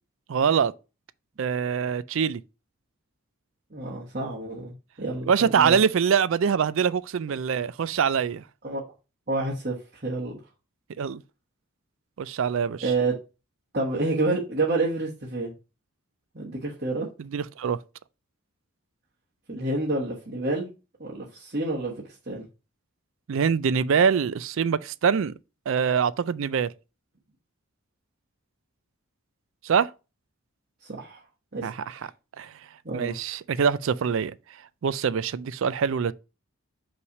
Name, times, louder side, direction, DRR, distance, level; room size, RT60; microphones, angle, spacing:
voice 1, 0.3-0.7 1.4-2.4 5.3-8.4 11.0-11.2 12.2-12.9 17.2-17.8 23.3-25.3 25.7-26.7 29.6-29.9 31.6-32.0 32.4-32.5 32.9-34.3 34.8-36.1, right 6 dB, 65° right, 0.4 m, -24 dB
voice 2, 3.7-5.8 8.6-8.8 9.3-10.3 12.8-13.1 13.7-15.5 16.3-17.1 19.5-20.7 21.0-22.5 30.8-31.2 31.5-32.1 32.8-33.1, right 2 dB, 40° right, 1.2 m, -29 dB
5.6 x 3.2 x 5.3 m
head